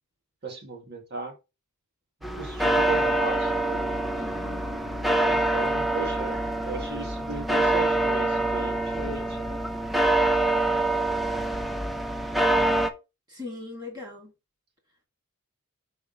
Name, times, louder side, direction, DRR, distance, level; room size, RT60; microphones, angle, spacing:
voice 1, 0.4-1.3 2.3-3.9 5.1-6.4 6.6-9.6, right 4 dB, 50° right, 1.6 m, -36 dB
sound 1, 2.2-12.9, right 1 dB, ahead, 0.6 m, -25 dB
voice 2, 4.1-4.8 13.3-14.3, left 3 dB, 20° right, 3.0 m, -40 dB
5.4 x 4.8 x 4.0 m
head